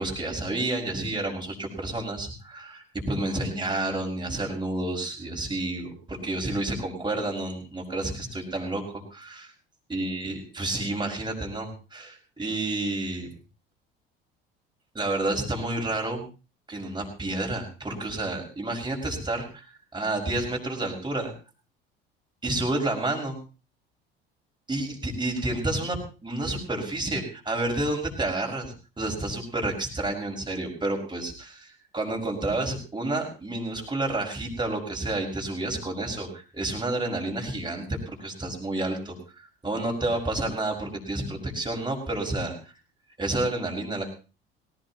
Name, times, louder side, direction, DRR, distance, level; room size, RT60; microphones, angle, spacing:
voice 1, 0.0-9.5 9.9-13.3 14.9-16.3 16.7-21.3 22.4-23.4 24.7-42.7 43.2-44.0, right 2 dB, 15° right, 1 dB, 6.1 m, -30 dB
19.0 x 18.0 x 3.0 m, 0.33 s
hypercardioid pair, 65°, 30 cm